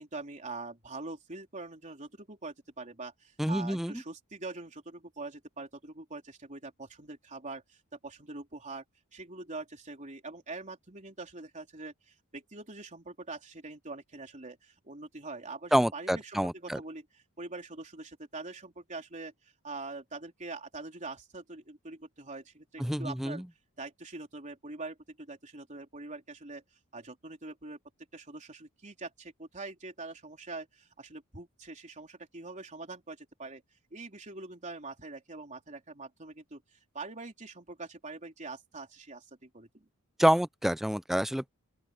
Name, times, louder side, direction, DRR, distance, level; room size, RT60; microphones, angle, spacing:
voice 1, 0.0-8.8 9.1-23.4 23.8-26.6 26.9-27.8 28.1-33.6 33.9-39.9, right 3 dB, 35° right, 3.7 m, -44 dB
voice 2, 3.4-3.9 15.7-16.8 22.8-23.4 40.2-41.5, equal, ahead, 0.3 m, -27 dB
open air
head